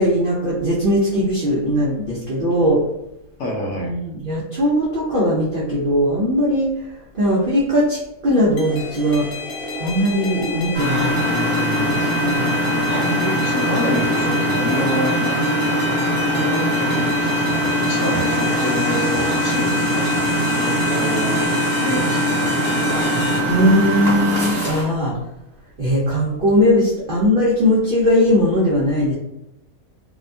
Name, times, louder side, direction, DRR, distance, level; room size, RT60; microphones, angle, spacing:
voice 1, 0.0-2.8 3.7-6.7 7.1-9.2 9.8-11.1 11.7-12.4 23.5-25.2 25.8-29.1, equal, 60° right, -7 dB, 0.5 m, -19 dB
voice 2, 3.4-3.9 11.3-12.2 12.9-20.1 20.5-21.5 21.8-22.5, equal, 70° left, -3 dB, 0.9 m, -28 dB
sound 1, 8.6-23.4, left 5 dB, 90° left, 1.1 m, -29 dB
Engine, 10.7-24.8, equal, 15° right, 0.9 m, -21 dB
2.7 x 2.2 x 2.5 m, 0.85 s
omnidirectional pair, 1.6 m